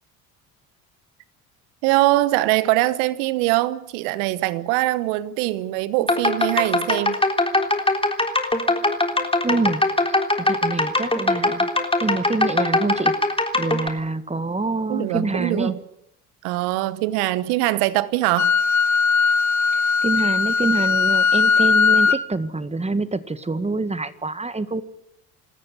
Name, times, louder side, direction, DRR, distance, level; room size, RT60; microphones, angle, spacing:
voice 1, 1.8-7.2 14.9-15.8 16.4-18.5, right 17 dB, 75° right, 1.2 m, -22 dB
sound 1, 6.0-13.9, left 2 dB, 15° left, 3.5 m, -21 dB
voice 2, 9.4-9.8 10.1-11.7 12.0-13.1 13.5-15.7 19.7-24.8, right 3 dB, 15° right, 1.9 m, -26 dB
Wind instrument woodwind instrument, 18.4-22.2, left 5 dB, 45° left, 2.2 m, -19 dB
26.5 x 14.0 x 9.9 m
hypercardioid pair, 60°, 40 cm